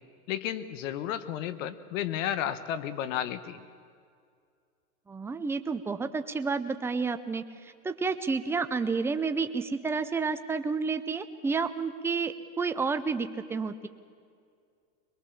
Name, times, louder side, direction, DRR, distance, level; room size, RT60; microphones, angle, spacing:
voice 1, 0.3-3.6, left 10 dB, 55° left, 14 dB, 1.3 m, -32 dB
voice 2, 5.1-7.4 7.8-13.9, right 4 dB, 5° right, 9 dB, 0.5 m, -30 dB
22.5 x 22.0 x 7.0 m, 2.2 s
hypercardioid pair, 130°, 45 cm